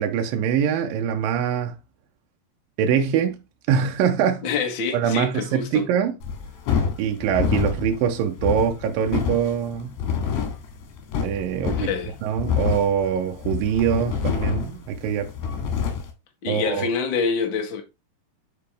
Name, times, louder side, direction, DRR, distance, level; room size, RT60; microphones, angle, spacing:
voice 1, 0.0-1.8 2.8-3.4 3.7-4.5 4.9-6.2 7.0-10.0 11.2-11.9 12.2-15.3 16.5-16.9, right 8 dB, 75° right, 2.1 m, -23 dB
voice 2, 4.4-5.8 11.7-12.1 16.4-17.8, left 5 dB, 60° left, 1.2 m, -26 dB
sound 1, 6.2-16.1, left 7 dB, 80° left, 3.8 m, -27 dB
8.8 x 5.0 x 3.4 m
omnidirectional pair, 4.8 m